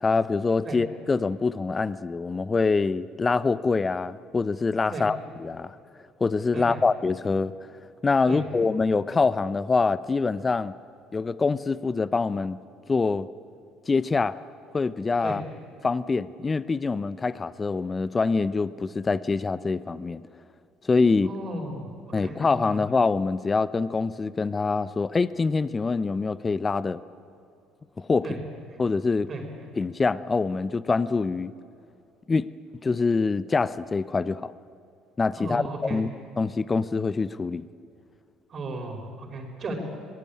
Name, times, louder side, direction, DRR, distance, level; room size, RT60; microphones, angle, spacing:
voice 1, 0.0-5.8 6.2-7.5 8.0-10.7 11.1-12.6 12.9-13.3 13.9-14.4 14.7-15.4 15.8-20.2 20.8-21.3 22.1-27.0 28.0-28.4 28.8-29.3 29.8-31.5 32.3-32.5 32.8-34.5 35.2-37.7, left 4 dB, 30° left, 17 dB, 0.7 m, -25 dB
voice 2, 21.2-21.9 22.2-22.8 28.2-28.4 29.3-29.4 35.4-36.0 38.5-39.8, right 2 dB, 45° right, 3 dB, 5.5 m, -35 dB
24.0 x 18.5 x 8.7 m, 2.6 s
hypercardioid pair, 60°, 0 cm